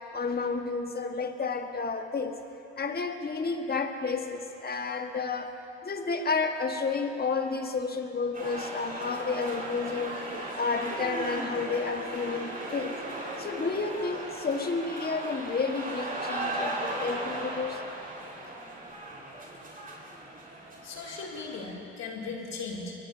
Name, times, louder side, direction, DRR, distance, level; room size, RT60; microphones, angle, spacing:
voice 1, 0.1-2.4 2.8-5.5 5.8-10.2 10.5-13.0 13.4-17.8, left 4 dB, 30° left, 5 dB, 1.6 m, -31 dB
sound 1, 8.3-21.7, right 1 dB, 25° right, 4.7 m, -37 dB
voice 2, 20.8-22.9, left 4 dB, 55° left, -2 dB, 3.2 m, -37 dB
22.5 x 21.5 x 2.8 m, 2.7 s
hypercardioid pair, 50°, 32 cm